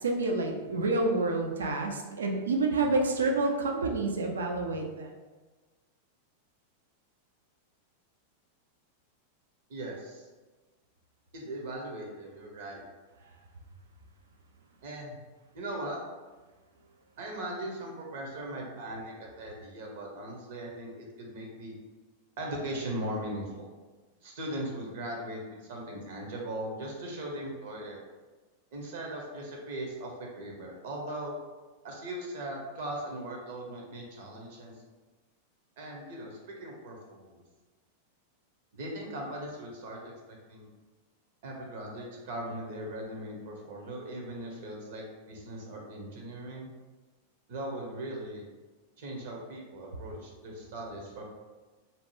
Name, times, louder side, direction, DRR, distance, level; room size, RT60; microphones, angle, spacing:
voice 1, 0.0-5.1, right 3 dB, 80° right, 2 dB, 0.4 m, -28 dB
voice 2, 9.7-10.3 11.3-12.8 14.8-15.2 15.5-16.0 17.2-21.8 22.4-23.7 24.2-28.0 28.7-31.3 31.8-34.7 35.8-37.4 38.7-40.1 40.5-40.7 41.4-46.7 47.5-48.4 49.0-51.2, right 1 dB, 65° right, -1 dB, 0.8 m, -39 dB
2.7 x 2.1 x 3.0 m, 1.3 s
hypercardioid pair, 95°, 0 cm